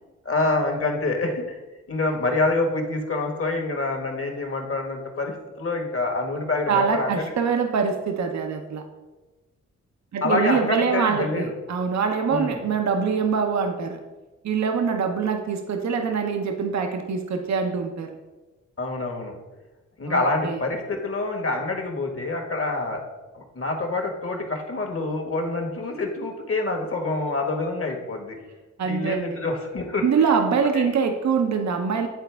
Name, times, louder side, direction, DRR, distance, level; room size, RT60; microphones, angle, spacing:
voice 1, 0.2-1.6 1.9-7.2 10.2-11.5 12.3-12.6 18.8-19.3 20.0-23.0 23.3-28.4 28.9-30.0 30.7-30.9, left 2 dB, 45° left, 2 dB, 1.5 m, -26 dB
voice 2, 6.7-8.8 10.1-14.0 14.4-18.1 20.1-20.6 28.8-29.4 30.0-32.1, right 6 dB, 60° right, 5 dB, 0.7 m, -24 dB
9.3 x 4.1 x 3.4 m, 1.2 s
supercardioid pair, 50°, 31 cm